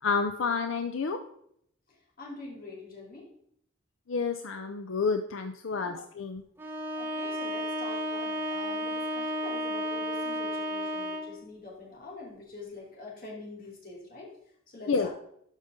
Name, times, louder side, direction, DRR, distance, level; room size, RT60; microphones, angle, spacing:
voice 1, 0.0-1.2 4.1-6.4 14.9-15.1, left 4 dB, 80° left, 7 dB, 0.5 m, -29 dB
voice 2, 1.9-3.3 5.6-6.0 6.9-14.3 14.7-15.1, left 2 dB, 45° left, -3 dB, 2.9 m, -45 dB
Bowed string instrument, 6.6-11.4, equal, 10° right, 1.1 m, -33 dB
12.5 x 5.3 x 3.7 m, 0.70 s
head